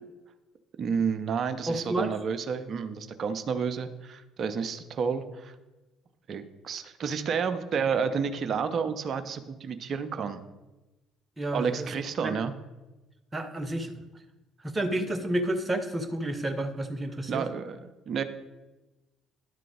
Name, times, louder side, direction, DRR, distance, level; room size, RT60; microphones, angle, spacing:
voice 1, 0.8-5.5 6.3-10.4 11.5-12.5 17.3-18.2, right 6 dB, 45° right, 10 dB, 0.6 m, -30 dB
voice 2, 1.7-2.1 11.4-11.9 12.2-12.3 13.3-13.9 14.6-17.4, right 1 dB, 20° right, 7 dB, 0.9 m, -30 dB
11.0 x 3.8 x 5.0 m, 1.1 s
figure-of-eight pair, 50°, 0 cm